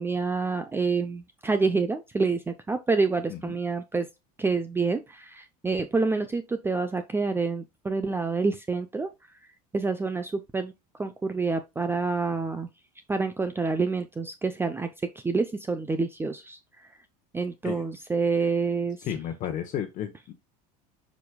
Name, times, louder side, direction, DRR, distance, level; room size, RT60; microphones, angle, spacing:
voice 1, 0.0-4.1 4.4-9.1 9.7-10.7 11.0-12.7 13.1-14.9 15.2-16.6 17.3-19.2, right 4 dB, 10° right, 0.6 m, -27 dB
voice 2, 19.0-20.3, left 10 dB, 45° left, 1.1 m, -32 dB
8.2 x 5.2 x 2.3 m
supercardioid pair, 120°, 18 cm